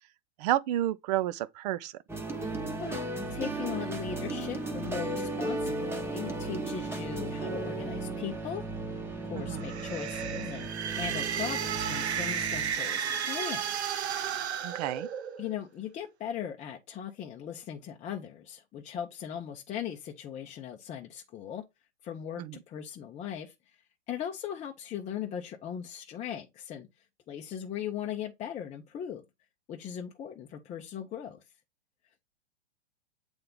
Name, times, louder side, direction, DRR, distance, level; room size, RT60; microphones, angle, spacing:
voice 1, 0.4-1.9 9.3-9.6 14.6-15.1 22.4-22.6, right 14 dB, 40° right, 0.5 m, -30 dB
sound 1, 2.1-12.7, right 2 dB, 5° right, 1.1 m, -35 dB
voice 2, 2.8-8.7 9.3-13.8 15.4-21.6 22.0-23.8 24.1-26.9 27.3-29.2 29.7-31.4, left 9 dB, 20° left, 0.7 m, -39 dB
sound 2, 9.5-15.5, right 8 dB, 80° right, 0.8 m, -33 dB
7.7 x 3.5 x 3.7 m
hypercardioid pair, 120°, 32 cm